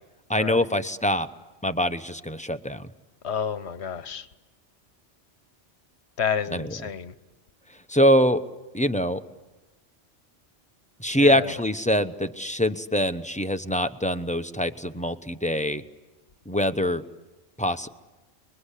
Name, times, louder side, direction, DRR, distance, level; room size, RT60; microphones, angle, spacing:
voice 1, 0.3-1.3 1.6-2.9 6.5-6.7 7.9-8.4 8.7-9.2 11.0-15.8 16.5-17.0 17.6-17.9, equal, 5° left, 8 dB, 0.8 m, -24 dB
voice 2, 3.2-4.3 6.2-7.1 11.1-11.6, left 7 dB, 65° left, 13 dB, 1.3 m, -30 dB
30.0 x 22.0 x 8.4 m, 1.2 s
omnidirectional pair, 1.2 m